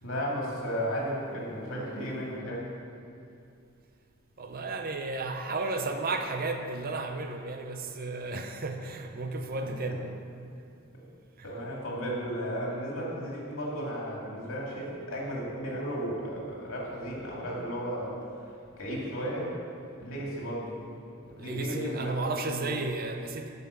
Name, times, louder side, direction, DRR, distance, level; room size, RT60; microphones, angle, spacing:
voice 1, 0.0-2.6 9.6-9.7 11.4-18.2 18.8-19.5 20.0-20.7 21.2-22.8, equal, 70° left, -4 dB, 2.5 m, -34 dB
voice 2, 4.4-10.1 11.4-11.5 21.4-23.5, right 3 dB, 45° right, 6 dB, 0.6 m, -33 dB
9.6 x 5.5 x 6.9 m, 2.5 s
head